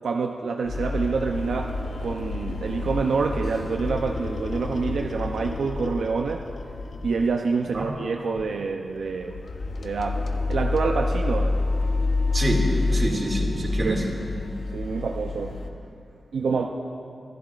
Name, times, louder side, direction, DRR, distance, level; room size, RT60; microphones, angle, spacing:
voice 1, 0.0-1.7 2.0-6.4 7.0-9.4 9.8-11.6 13.8-14.2 14.7-15.7 16.3-16.7, right 4 dB, 90° right, 2 dB, 0.5 m, -27 dB
sound 1, 0.6-7.4 7.7-8.0 8.4-8.5 8.9-15.7, left 3 dB, 75° left, 0.7 m, -28 dB
voice 2, 12.3-14.0, right 1 dB, 45° right, 0 dB, 2.2 m, -26 dB
24.5 x 11.5 x 2.4 m, 2.5 s
cardioid pair, 75°, 0 cm